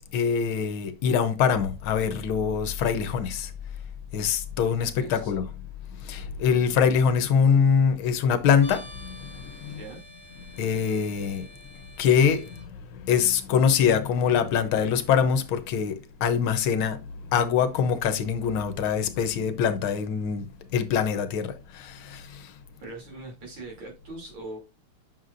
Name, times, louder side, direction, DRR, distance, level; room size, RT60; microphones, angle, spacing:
voice 1, 0.1-3.5 4.1-5.5 5.9-9.8 10.5-11.5 12.0-22.6, left 7 dB, 75° left, 1.7 m, -24 dB
sound 1, 1.5-15.0 17.8-17.9, left 7 dB, 20° right, 1.4 m, -44 dB
voice 2, 5.0-5.4 9.7-10.0 22.8-24.6, right 2 dB, 90° right, 3.8 m, -41 dB
sound 2, 8.6-12.6, equal, 45° right, 4.6 m, -48 dB
9.0 x 6.4 x 2.5 m
omnidirectional pair, 2.3 m